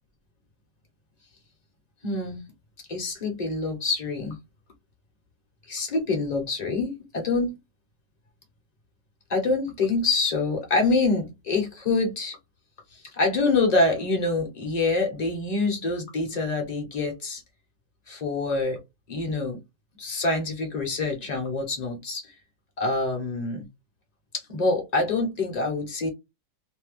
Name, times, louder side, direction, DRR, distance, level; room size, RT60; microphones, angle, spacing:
voice 1, 2.0-2.4 2.9-4.4 5.7-7.6 9.3-12.4 12.9-17.4 18.1-18.8 19.1-19.6 20.0-22.3 22.8-23.7 24.3-26.1, left 3 dB, 35° left, 0.8 m, -26 dB
2.8 x 2.1 x 3.1 m
omnidirectional pair, 1.7 m